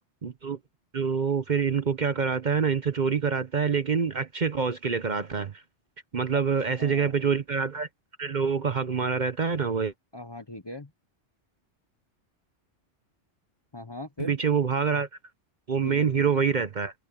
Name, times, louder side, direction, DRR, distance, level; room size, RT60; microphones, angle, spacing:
voice 1, 0.2-0.6 0.9-5.6 6.1-7.9 8.2-9.9 14.2-15.1 15.7-16.9, right 6 dB, 45° right, 0.9 m, -26 dB
voice 2, 6.3-7.2 10.1-10.9 13.7-14.4 15.8-16.5, left 2 dB, 25° left, 0.8 m, -40 dB
omnidirectional pair, 1.2 m